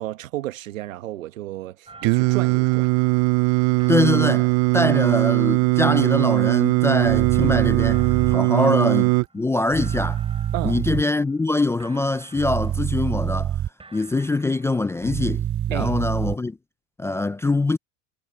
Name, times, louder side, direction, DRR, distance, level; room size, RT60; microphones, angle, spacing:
voice 1, 0.0-2.9 8.6-8.8 10.5-10.8 15.7-15.9, right 14 dB, 85° right, 1.4 m, -32 dB
sound 1, 1.8-3.5 3.8-5.4 5.8-7.4 7.8-9.5 9.8-11.5 11.8-13.4 13.8-15.4, right 3 dB, 15° right, 7.9 m, -49 dB
Singing, 2.0-9.3, right 27 dB, 55° right, 0.7 m, -20 dB
voice 2, 3.9-9.1 9.3-10.2 10.6-13.6 13.9-16.6 17.0-17.8, left 2 dB, 5° left, 0.4 m, -23 dB
sound 2, 7.0-8.4 9.7-11.0 12.4-13.7 15.0-16.3, right 10 dB, 35° right, 2.9 m, -26 dB
hypercardioid pair, 100°, 39 cm